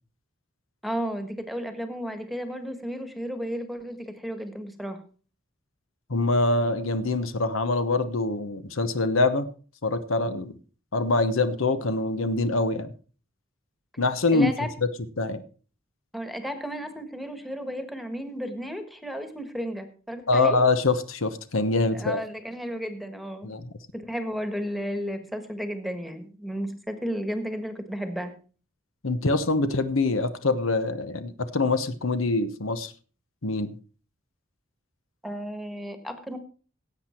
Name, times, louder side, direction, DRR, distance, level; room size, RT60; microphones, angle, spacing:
voice 1, 0.8-5.0 14.3-14.7 16.1-20.6 21.9-23.5 23.9-28.3 35.2-36.4, equal, ahead, 8 dB, 1.5 m, -33 dB
voice 2, 6.1-9.5 9.8-10.5 10.9-12.9 14.0-14.5 15.2-15.4 20.3-22.2 23.4-23.7 29.0-32.9 33.4-33.7, left 3 dB, 75° left, 11 dB, 1.1 m, -24 dB
16.5 x 8.2 x 4.4 m, 0.38 s
head